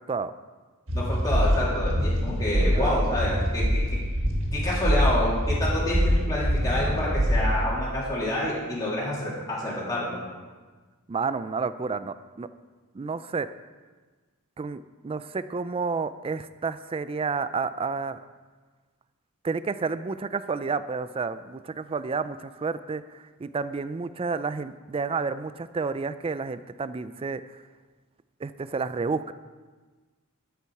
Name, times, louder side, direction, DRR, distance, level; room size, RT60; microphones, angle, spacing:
voice 1, 0.9-4.0 4.5-10.2, left 1 dB, 15° left, -7 dB, 2.9 m, -28 dB
sound 1, 0.9-7.6, equal, 65° right, 1.7 m, -24 dB
voice 2, 2.6-3.0 11.1-12.5 12.9-13.5 14.6-18.2 19.4-27.4 28.4-29.3, right 4 dB, 25° right, 13 dB, 0.3 m, -30 dB
12.0 x 7.0 x 4.8 m, 1.4 s
head